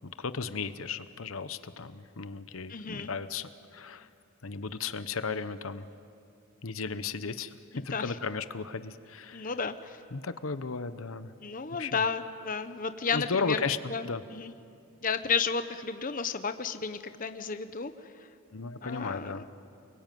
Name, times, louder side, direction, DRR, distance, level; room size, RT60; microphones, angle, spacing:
voice 1, 0.2-4.1 4.4-5.8 6.6-9.5 10.1-11.3 11.8-12.0 13.1-14.2 18.5-19.4, left 4 dB, 75° left, 12 dB, 0.9 m, -35 dB
voice 2, 2.7-3.1 7.7-8.1 9.3-10.0 11.4-13.6 13.9-14.5 15.0-17.9 18.8-19.4, left 5 dB, 40° left, 10 dB, 0.9 m, -32 dB
29.5 x 22.0 x 9.3 m, 2.5 s
head